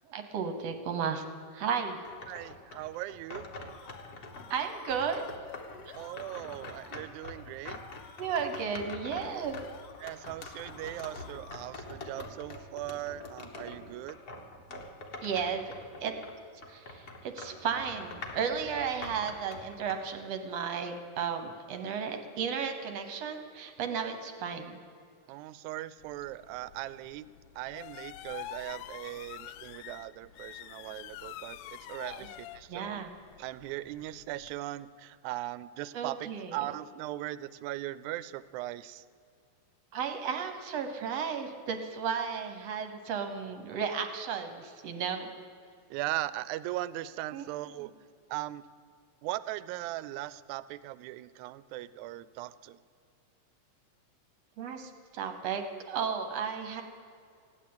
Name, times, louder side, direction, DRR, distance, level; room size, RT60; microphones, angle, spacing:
voice 1, 0.1-1.2 1.5-2.0 4.5-5.2 5.9-6.0 8.2-9.6 14.7-14.8 15.2-16.1 16.7-24.8 32.1-32.3 32.7-33.1 35.9-36.7 39.9-45.3 47.3-47.5 47.8-47.9 54.6-56.8, right 6 dB, 65° right, 7 dB, 1.9 m, -34 dB
sound 1, 2.1-4.5 4.9-16.4 16.6-20.0, left 2 dB, 45° left, 1.3 m, -45 dB
voice 2, 2.3-3.5 5.9-7.8 10.0-14.2 25.3-27.3 27.6-33.1 33.4-39.0 45.9-47.9 48.3-48.6 49.2-52.8, right 15 dB, 80° right, 17 dB, 1.9 m, -39 dB
sound 2, 3.6-11.9, left 7 dB, 65° left, 1.7 m, -53 dB
sound 3, 26.0-34.6, left 13 dB, 85° left, 1.5 m, -47 dB
15.5 x 9.9 x 8.6 m, 2.4 s
omnidirectional pair, 3.5 m